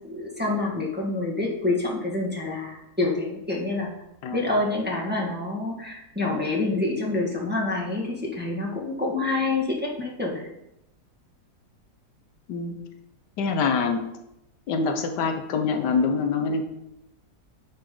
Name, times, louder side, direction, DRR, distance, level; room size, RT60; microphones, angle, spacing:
voice 1, 0.0-3.9 4.3-10.5, left 2 dB, 5° right, -4 dB, 1.4 m, -27 dB
voice 2, 13.4-14.0 14.7-16.6, left 5 dB, 85° left, 5 dB, 1.5 m, -25 dB
9.2 x 5.8 x 3.8 m, 0.86 s
omnidirectional pair, 1.8 m